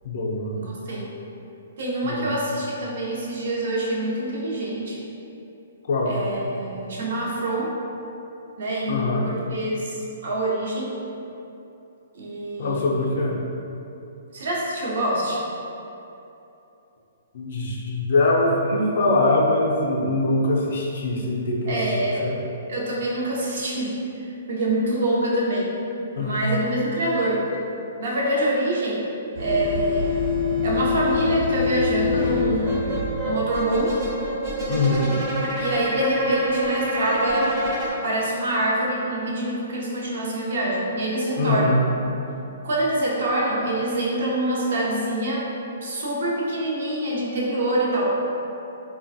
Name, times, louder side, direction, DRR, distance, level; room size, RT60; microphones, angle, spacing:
voice 1, 0.0-0.6 2.0-2.3 5.9-6.2 8.9-9.3 12.6-13.4 17.3-22.3 26.2-26.4 34.7-35.1 36.2-36.3 41.4-41.8, left 2 dB, 55° left, -2 dB, 0.4 m, -23 dB
voice 2, 0.6-1.1 1.8-5.0 6.1-7.7 8.6-11.0 12.1-13.1 14.3-15.4 21.7-22.3 22.7-24.0 24.5-25.8 26.1-27.5 28.0-29.1 29.4-30.2 30.6-33.9 35.6-37.6 37.9-41.9 42.6-45.5 45.8-48.2, right 1 dB, 60° right, -4 dB, 0.6 m, -25 dB
sound 1, 29.3-33.6, left 5 dB, 80° right, 1.1 m, -25 dB
sound 2, 32.6-37.9, right 1 dB, 20° right, 0.5 m, -27 dB
3.1 x 2.1 x 2.6 m, 2.8 s
hypercardioid pair, 165°, 0 cm